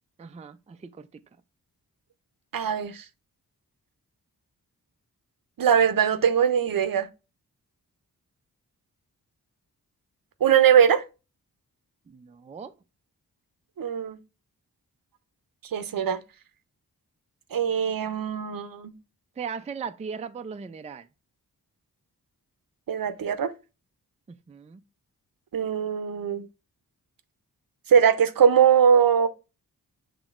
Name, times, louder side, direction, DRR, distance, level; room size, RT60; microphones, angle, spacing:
voice 1, 0.2-1.1 12.1-12.7 19.4-21.1 24.5-24.8, right 6 dB, 20° right, 0.4 m, -38 dB
voice 2, 2.5-3.0 5.6-7.1 10.4-11.0 13.8-14.2 15.7-16.2 17.5-18.9 22.9-23.5 25.5-26.5 27.9-29.3, right 8 dB, 60° right, 0.7 m, -21 dB
7.0 x 3.0 x 2.4 m
cardioid pair, 45°, 39 cm